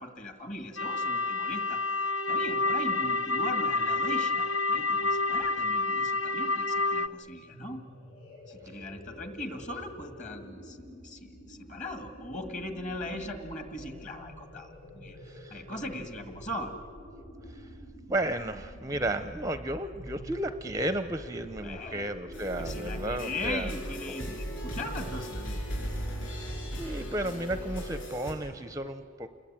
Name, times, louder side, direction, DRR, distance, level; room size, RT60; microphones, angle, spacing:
voice 1, 0.0-1.8 2.3-7.8 8.5-14.7 14.9-15.2 15.5-16.8 21.6-22.2 22.6-25.6, left 1 dB, 35° left, 7 dB, 2.1 m, -39 dB
sound 1, 0.8-7.1, left 3 dB, 55° left, 0.8 m, -28 dB
sound 2, 7.4-25.0, equal, 90° left, 8.0 m, -48 dB
voice 2, 15.2-15.6 17.5-17.7 18.1-23.7 26.8-29.3, right 1 dB, 15° right, 11 dB, 0.5 m, -33 dB
sound 3, 22.3-28.3, equal, 70° left, 6.4 m, -36 dB
28.5 x 21.0 x 8.8 m, 2.5 s
head